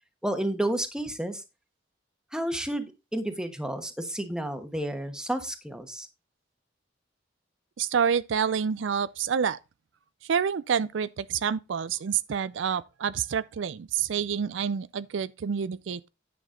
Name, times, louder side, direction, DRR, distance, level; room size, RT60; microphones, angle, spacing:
voice 1, 0.2-1.4 2.3-6.1, right 1 dB, 5° right, 1.2 m, -31 dB
voice 2, 7.8-9.6 10.2-16.1, right 7 dB, 75° right, 0.4 m, -28 dB
10.0 x 6.0 x 3.8 m
head